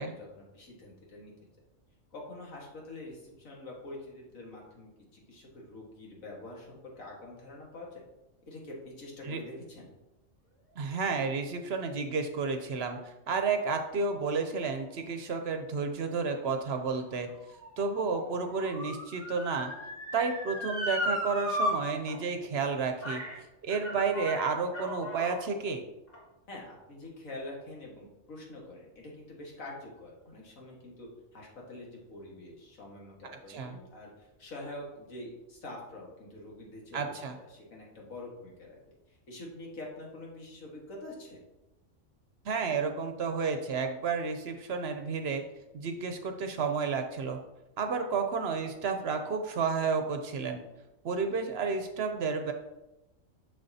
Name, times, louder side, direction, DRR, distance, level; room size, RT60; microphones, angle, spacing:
voice 1, 0.0-1.3 2.1-8.0 8.5-9.9 26.5-38.8 39.1-41.4, left 2 dB, 90° left, -2 dB, 2.0 m, -46 dB
voice 2, 10.8-17.3 17.8-19.7 20.1-23.2 23.6-25.8 33.5-33.8 36.9-37.3 42.4-45.4 45.7-47.4 47.8-50.6 51.0-52.5, right 5 dB, 60° right, 6 dB, 0.8 m, -31 dB
Motor vehicle (road) / Siren, 16.6-21.7 22.1-22.2 23.0-23.4 23.7-25.4 26.1-26.2, left 1 dB, 70° left, 2.6 m, -36 dB
6.7 x 6.3 x 2.7 m, 0.98 s
omnidirectional pair, 1.3 m